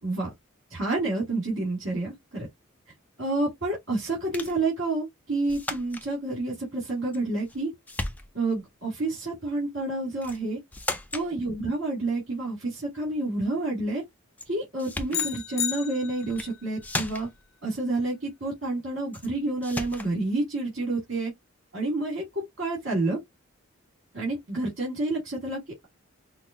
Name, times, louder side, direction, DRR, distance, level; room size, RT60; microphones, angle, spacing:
voice 1, 0.7-2.5 3.2-7.7 8.3-10.6 11.1-14.0 14.5-17.3 17.6-21.3 21.7-23.2 24.1-25.9, right 2 dB, 65° right, 2.5 m, -29 dB
sound 1, 4.3-4.6 5.5-6.1 7.1-7.6 7.9-8.6 10.2-10.4 10.7-11.3 14.4-14.5 14.8-15.3 16.2-16.5 16.8-17.4 19.1-19.3 19.6-20.1, left 2 dB, 10° left, 0.4 m, -35 dB
sound 2, 15.1-16.5, left 10 dB, 60° left, 0.5 m, -32 dB
5.8 x 2.1 x 2.6 m
head